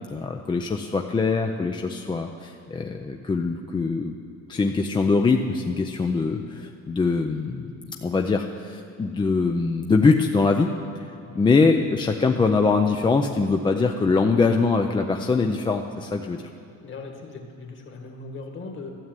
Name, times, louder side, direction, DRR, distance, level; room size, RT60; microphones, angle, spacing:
voice 1, 0.1-4.1 4.5-10.7 11.4-16.5, left 4 dB, 15° left, 3 dB, 0.4 m, -23 dB
voice 2, 16.8-18.9, left 3 dB, 40° left, 3 dB, 1.8 m, -39 dB
13.0 x 7.3 x 9.0 m, 2.6 s
cardioid pair, 155°, 29 cm